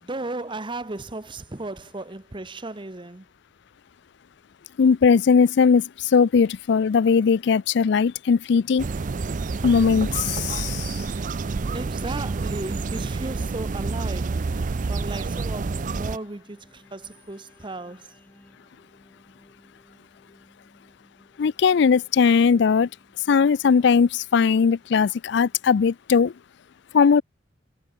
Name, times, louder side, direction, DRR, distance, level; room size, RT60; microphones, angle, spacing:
voice 1, 0.0-3.3 11.7-14.5 14.9-18.2, right 2 dB, 25° right, 1.0 m, -35 dB
voice 2, 4.8-8.8 9.6-11.0 21.4-22.9 23.3-26.3 26.9-27.2, left 5 dB, 60° left, 0.4 m, -19 dB
sound 1, 8.5-25.7, equal, 10° left, 4.1 m, -56 dB
sound 2, 8.8-16.2, right 4 dB, 40° right, 0.5 m, -28 dB
head